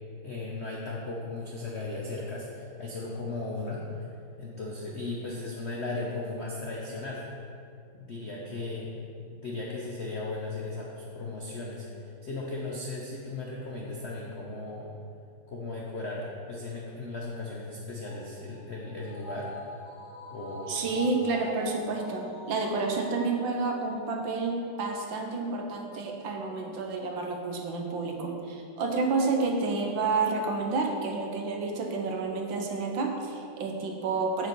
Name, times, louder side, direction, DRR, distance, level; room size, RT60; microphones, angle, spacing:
voice 1, 0.2-4.1 4.4-7.2 7.9-8.9 9.4-14.9 15.5-19.5 20.3-21.0, left 2 dB, 80° left, -3 dB, 0.6 m, -36 dB
sound 1, 18.0-24.7 25.1-25.2, left 1 dB, 20° right, 1.0 m, -44 dB
voice 2, 20.7-34.5, right 3 dB, 65° right, 2 dB, 1.6 m, -30 dB
7.8 x 7.5 x 4.6 m, 2.5 s
omnidirectional pair, 2.4 m